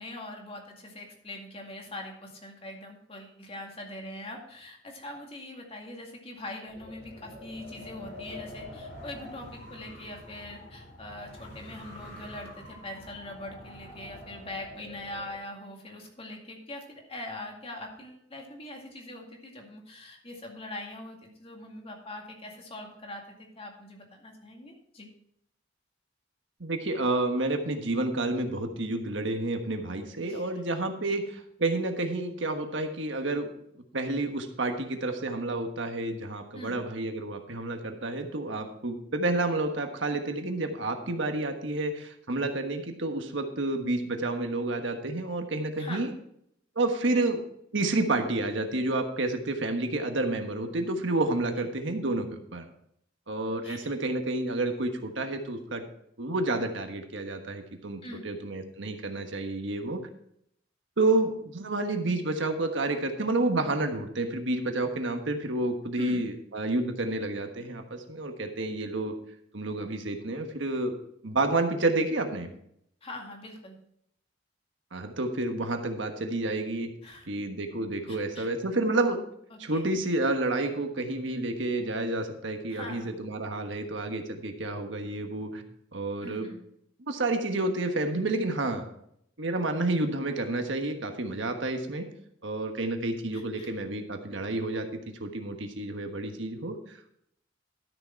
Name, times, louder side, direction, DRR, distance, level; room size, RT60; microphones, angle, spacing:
voice 1, 0.0-25.1 30.3-30.5 36.5-36.8 45.8-46.1 51.6-51.7 53.4-53.9 58.0-58.2 66.0-66.2 73.0-73.8 77.0-77.3 78.1-78.5 79.5-79.9 82.7-83.2 86.2-86.6 93.3-93.7, left 1 dB, 30° left, 1 dB, 2.1 m, -42 dB
Wind, 6.7-15.4, left 1 dB, 60° left, 4.2 m, -46 dB
voice 2, 26.6-33.5 33.9-46.1 46.7-47.4 47.7-52.7 53.3-55.8 56.2-60.0 61.0-69.1 69.5-71.0 71.2-72.5 74.9-76.9 77.3-79.2 79.6-85.6 85.9-86.5 87.0-88.8 89.4-92.1 92.4-97.2, right 2 dB, 75° right, 5 dB, 1.4 m, -30 dB
12.5 x 6.7 x 4.5 m, 0.72 s
head